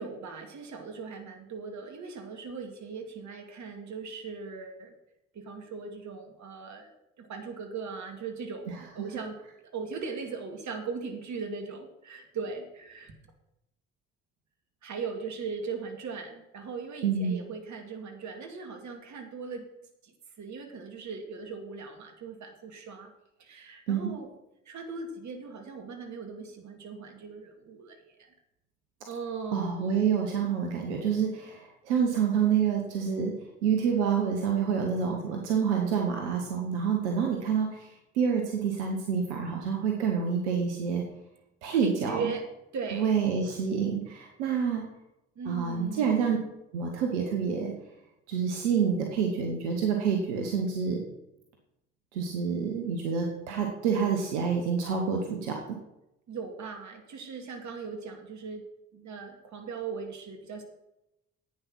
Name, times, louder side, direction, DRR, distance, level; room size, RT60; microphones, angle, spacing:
voice 1, 0.0-4.9 5.3-6.9 7.2-9.4 9.7-13.2 14.8-19.7 20.0-23.1 23.4-24.3 24.7-28.3 29.1-30.0 41.7-42.4 42.7-43.2 45.4-46.3 56.3-58.6 58.9-60.6, right 5 dB, 55° right, 4 dB, 2.6 m, -39 dB
voice 2, 17.0-17.4 23.9-24.1 29.5-33.4 33.6-37.9 38.1-41.0 41.6-42.3 42.9-44.8 45.4-46.4 46.7-47.7 48.3-51.0 52.1-55.8, right 6 dB, 85° right, 2 dB, 1.4 m, -28 dB
11.0 x 8.9 x 6.3 m, 0.88 s
hypercardioid pair, 50°, 34 cm